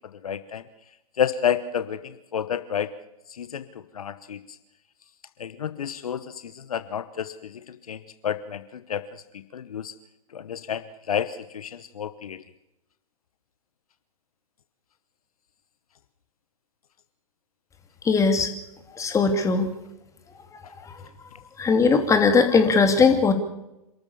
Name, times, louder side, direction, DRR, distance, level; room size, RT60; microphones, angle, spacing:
voice 1, 0.2-0.6 1.2-2.9 3.4-3.6 3.9-4.4 5.4-9.0 9.5-9.9 10.3-12.4, left 8 dB, 70° left, 13 dB, 1.0 m, -30 dB
voice 2, 18.0-18.5 19.0-19.7 21.6-23.3, left 4 dB, 15° left, 6 dB, 2.7 m, -19 dB
27.0 x 13.5 x 7.1 m, 0.92 s
figure-of-eight pair, 110°, 19 cm